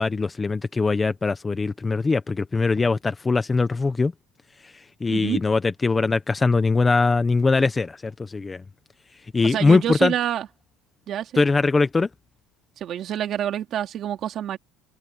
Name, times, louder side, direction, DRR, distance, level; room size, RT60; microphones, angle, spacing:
voice 1, 0.0-4.1 4.6-8.6 9.3-10.1 11.4-12.1, left 4 dB, 15° left, 0.7 m, -21 dB
voice 2, 5.1-5.4 9.4-10.5 11.1-11.4 12.8-14.6, right 10 dB, 35° right, 2.8 m, -27 dB
cardioid pair, 165°, 0 cm